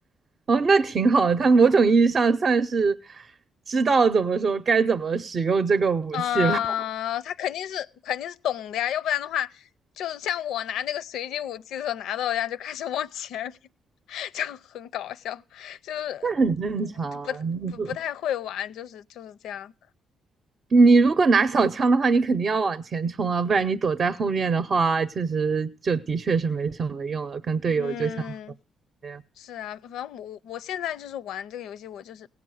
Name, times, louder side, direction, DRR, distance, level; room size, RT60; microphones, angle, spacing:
voice 1, 0.5-3.3 3.7-6.6 16.2-17.9 20.7-28.3 29.0-29.2, right 4 dB, 45° right, 0.6 m, -22 dB
voice 2, 6.1-9.7 10.0-13.6 14.1-16.4 17.0-17.4 17.7-19.7 27.8-28.6 29.4-32.3, left 10 dB, 80° left, 0.5 m, -31 dB
17.5 x 7.3 x 6.3 m
cardioid pair, 90°, 0 cm